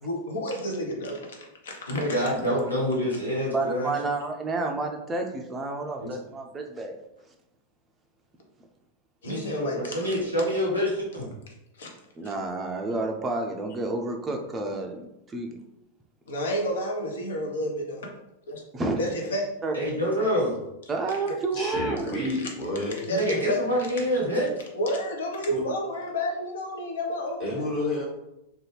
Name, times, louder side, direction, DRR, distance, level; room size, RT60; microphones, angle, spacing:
voice 1, 0.0-2.1 9.2-10.2 11.8-11.9 12.2-12.3 16.3-18.1 18.5-18.6 19.0-19.5 21.3-21.4 22.4-22.5 23.0-23.6 24.7-27.6, equal, 60° left, 1 dB, 0.6 m, -30 dB
voice 2, 1.9-3.9 6.0-6.1 9.2-11.3 19.7-20.6 23.1-24.5, equal, 85° left, -6 dB, 1.0 m, -26 dB
voice 3, 3.5-7.0 12.2-15.5 18.7-19.0 19.6-19.7 20.9-22.2, right 3 dB, 20° right, 2 dB, 0.4 m, -30 dB
voice 4, 21.5-23.0 25.5-25.6 27.4-28.0, left 1 dB, 35° left, -5 dB, 1.4 m, -29 dB
2.7 x 2.3 x 3.1 m, 0.88 s
figure-of-eight pair, 90°, 0 cm